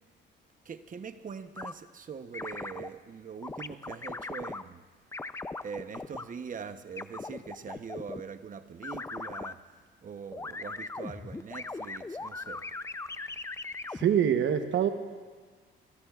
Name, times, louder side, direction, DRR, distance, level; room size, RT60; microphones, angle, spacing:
voice 1, 0.6-4.8 5.6-9.6 10.0-12.6, right 6 dB, 40° right, 10 dB, 0.9 m, -42 dB
sound 1, 1.6-1.7 2.3-2.9 3.4-4.6 5.1-6.2 7.0-8.2 8.8-9.5 10.3-14.0, left 3 dB, 15° left, 0.5 m, -39 dB
voice 2, 13.9-14.9, right 9 dB, 70° right, 7 dB, 1.0 m, -25 dB
28.5 x 16.5 x 2.4 m, 1.5 s
cardioid pair, 90°, 20 cm